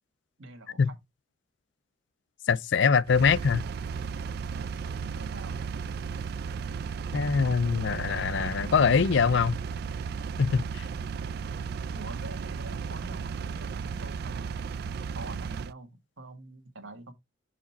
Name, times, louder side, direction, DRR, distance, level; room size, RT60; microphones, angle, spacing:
voice 1, 0.4-1.0 4.5-5.6 11.7-14.6 15.1-17.1, right 2 dB, 90° right, 1.4 m, -46 dB
voice 2, 2.5-3.6 7.1-9.6 10.4-10.9, left 6 dB, 65° left, 0.4 m, -23 dB
Engine, 3.1-15.7, right 5 dB, 55° right, 0.3 m, -35 dB
6.0 x 4.9 x 4.0 m
head